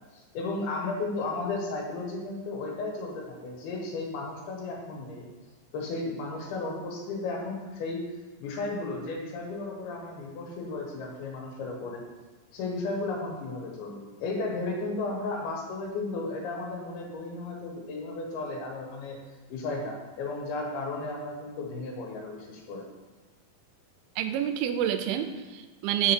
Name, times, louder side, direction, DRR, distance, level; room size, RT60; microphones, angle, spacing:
voice 1, 0.1-5.3 5.7-8.0 8.4-12.0 12.5-19.2 19.5-22.8, left 3 dB, 85° left, 0 dB, 3.2 m, -34 dB
voice 2, 24.2-26.1, right 10 dB, 85° right, 9 dB, 2.5 m, -28 dB
7.5 x 6.2 x 4.5 m, 1.3 s
omnidirectional pair, 4.3 m